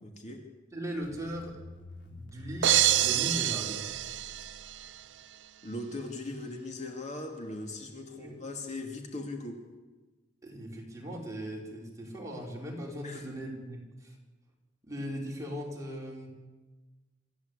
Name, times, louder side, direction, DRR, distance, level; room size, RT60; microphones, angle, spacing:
voice 1, 0.0-0.4 5.6-9.7 13.0-13.3, left 2 dB, 40° left, 2 dB, 2.7 m, -39 dB
voice 2, 0.7-1.6 2.0-3.8 8.1-8.3 10.4-14.1 14.8-16.3, equal, 20° right, -2 dB, 5.3 m, -39 dB
sound 1, 0.9-5.2, left 1 dB, 85° left, 3.2 m, -49 dB
sound 2, 2.6-4.9, right 13 dB, 75° right, 0.6 m, -27 dB
26.5 x 14.5 x 8.5 m, 1.2 s
head